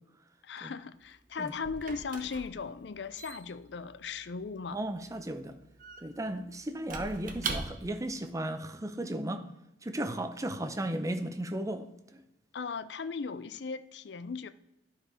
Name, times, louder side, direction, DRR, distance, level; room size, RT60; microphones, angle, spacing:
voice 1, 0.4-4.8 12.5-14.5, left 5 dB, 65° left, 0.5 m, -37 dB
Squeak / Wood, 0.9-8.1, right 4 dB, 50° right, 1.0 m, -42 dB
voice 2, 4.7-5.5 6.0-9.5 9.8-11.8, right 1 dB, 20° right, 0.7 m, -35 dB
11.0 x 4.8 x 4.9 m
head